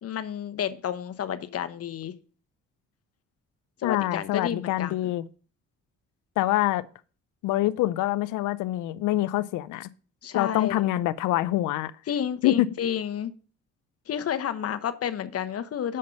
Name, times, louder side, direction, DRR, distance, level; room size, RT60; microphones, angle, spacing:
voice 1, 0.0-2.1 3.8-5.0 10.2-10.9 12.1-13.3 14.1-16.0, left 9 dB, 50° left, 0.9 m, -30 dB
voice 2, 3.8-5.2 6.4-6.9 7.4-9.9 10.3-11.9 12.4-12.7, left 15 dB, 85° left, 0.5 m, -25 dB
6.5 x 5.3 x 6.9 m
cardioid pair, 90°, 30 cm